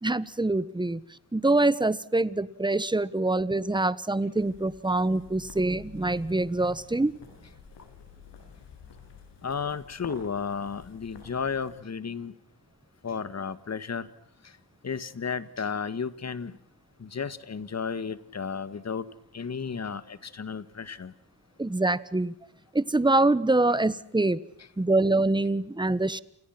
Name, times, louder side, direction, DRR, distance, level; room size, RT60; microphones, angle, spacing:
voice 1, 0.0-1.0 1.3-7.1 21.6-22.3 22.7-24.4 24.8-26.2, right 2 dB, 10° right, 17 dB, 1.3 m, -25 dB
sound 1, 4.3-11.7, left 6 dB, 85° left, 7.6 m, -50 dB
voice 2, 9.4-12.3 13.0-14.1 14.8-16.5 17.0-19.0 19.3-21.1, left 6 dB, 40° left, 14 dB, 1.8 m, -33 dB
29.5 x 29.0 x 6.0 m, 0.69 s
cardioid pair, 100°, 41 cm